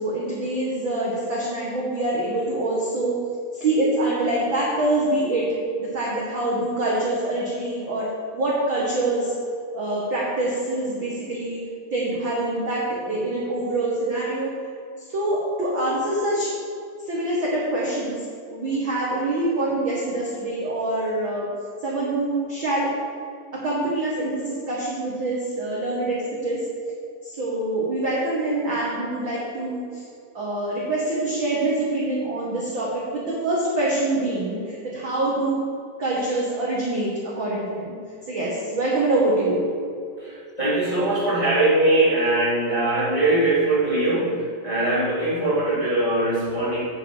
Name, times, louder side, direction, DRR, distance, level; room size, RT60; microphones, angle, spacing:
voice 1, 0.0-3.2 3.5-9.3 9.7-11.6 11.9-14.5 15.1-16.5 17.0-18.2 18.5-21.5 21.8-22.9 23.5-26.6 27.2-30.0 30.3-35.7 36.0-38.0 38.3-39.6, right 2 dB, 50° right, -5 dB, 1.5 m, -25 dB
voice 2, 40.2-46.8, right 2 dB, 10° left, -9 dB, 2.3 m, -21 dB
9.4 x 5.7 x 7.0 m, 2.4 s
omnidirectional pair, 4.2 m